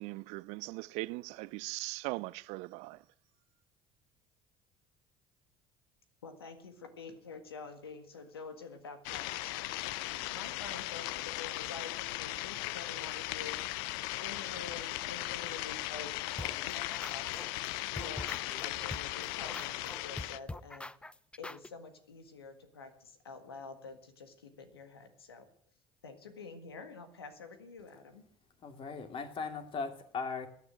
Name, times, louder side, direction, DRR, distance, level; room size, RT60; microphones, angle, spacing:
voice 1, 0.0-3.0, right 23 dB, 65° right, 0.5 m, -40 dB
voice 2, 6.2-9.7 10.3-13.6 14.2-17.4 17.9-18.3 18.6-20.9 21.4-25.5 26.0-28.2, left 4 dB, 90° left, 1.7 m, -48 dB
sound 1, 9.0-20.4, left 18 dB, 70° left, 0.6 m, -38 dB
sound 2, 16.4-17.7 18.0-21.7, left 2 dB, 10° left, 0.6 m, -43 dB
voice 3, 28.6-30.5, left 4 dB, 45° left, 2.5 m, -38 dB
16.0 x 9.7 x 7.6 m
hypercardioid pair, 60°, 12 cm